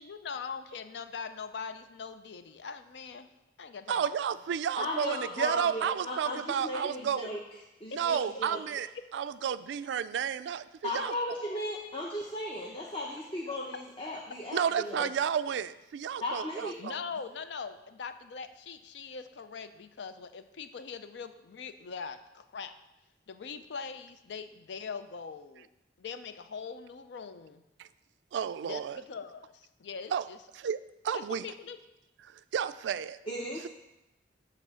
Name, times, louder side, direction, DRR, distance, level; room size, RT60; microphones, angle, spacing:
voice 1, 0.0-3.3 3.6-4.0 7.9-8.2 15.0-15.1 16.8-22.7 23.3-25.7 26.0-27.6 28.6-30.4 31.1-31.8, left 5 dB, 80° left, 10 dB, 0.5 m, -42 dB
voice 2, 3.9-7.3 7.9-8.9 9.1-11.1 14.5-17.0 27.8-27.9 28.3-29.0 30.1-30.3 30.5-30.8 31.0-31.5 32.2-33.2, right 8 dB, 85° right, 14 dB, 0.3 m, -32 dB
voice 3, 4.8-7.4 7.8-8.6 10.8-15.1 16.2-16.8 33.3-33.7, left 1 dB, 30° left, -3 dB, 0.7 m, -36 dB
7.8 x 3.5 x 6.2 m, 0.94 s
head